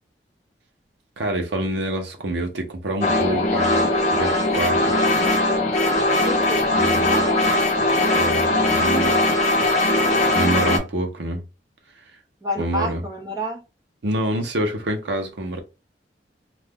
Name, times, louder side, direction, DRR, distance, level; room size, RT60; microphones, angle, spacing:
voice 1, 1.2-4.9 6.7-7.1 8.1-9.2 10.3-11.4 12.6-13.0 14.0-15.6, right 1 dB, 80° right, 0.7 m, -26 dB
sound 1, 3.0-10.8, left 1 dB, 40° left, 0.6 m, -20 dB
voice 2, 6.2-7.3 12.4-13.6, equal, 20° right, 0.7 m, -29 dB
2.4 x 2.2 x 3.3 m
head